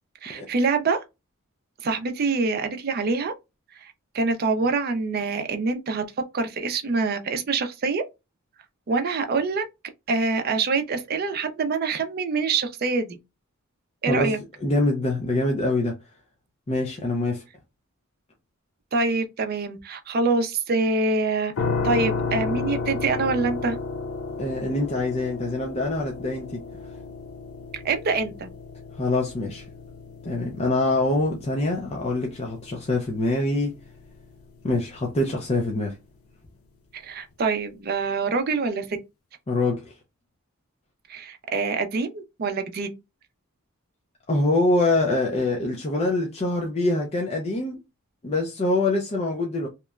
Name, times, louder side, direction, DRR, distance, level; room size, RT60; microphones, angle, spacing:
voice 1, 0.2-1.0 1.8-3.3 3.8-6.0 6.3-8.0 8.9-9.6 10.1-13.2 14.0-14.4 18.9-21.5 21.8-23.8 27.7-28.5 36.9-38.9 41.1-42.9, right 4 dB, 45° right, 0.4 m, -25 dB
voice 2, 14.6-15.9 16.7-17.4 24.4-26.6 29.0-29.6 30.2-33.8 34.6-36.0 39.5-39.9 44.3-47.8 48.2-49.7, left 2 dB, 30° left, 0.4 m, -24 dB
sound 1, 21.6-34.4, left 4 dB, 75° left, 0.5 m, -33 dB
2.9 x 2.1 x 2.3 m
head